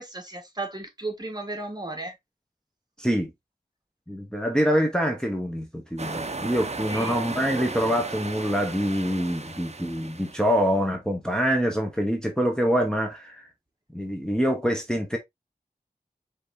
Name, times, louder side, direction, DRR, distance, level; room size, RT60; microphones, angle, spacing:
voice 1, 0.0-2.1 6.9-7.2, right 2 dB, 25° right, 1.4 m, -34 dB
voice 2, 3.0-3.3 4.1-13.5 13.9-15.2, equal, 5° left, 1.0 m, -25 dB
sound 1, 6.0-10.7, right 3 dB, 45° right, 0.6 m, -35 dB
5.1 x 3.5 x 2.6 m
wide cardioid pair, 55°, 16 cm